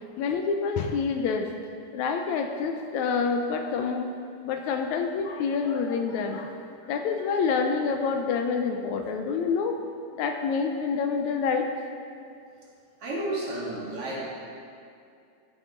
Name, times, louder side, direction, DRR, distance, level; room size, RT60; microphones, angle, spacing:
voice 1, 0.2-1.5 1.9-4.1 4.5-6.5 6.9-9.8 10.2-11.7, left 5 dB, 80° left, 5 dB, 1.9 m, -27 dB
voice 2, 13.0-14.2, right 1 dB, 50° right, -5 dB, 2.7 m, -31 dB
14.5 x 8.9 x 3.7 m, 2.4 s
omnidirectional pair, 3.5 m